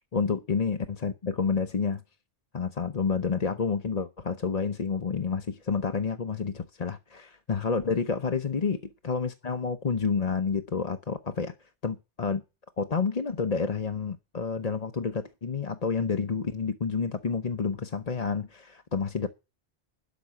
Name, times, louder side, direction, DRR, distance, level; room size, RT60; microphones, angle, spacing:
voice 1, 0.1-2.0 2.5-11.5 11.8-12.4 12.8-19.3, left 5 dB, 40° left, 0.9 m, -29 dB
12.0 x 6.2 x 8.5 m
omnidirectional pair, 1.2 m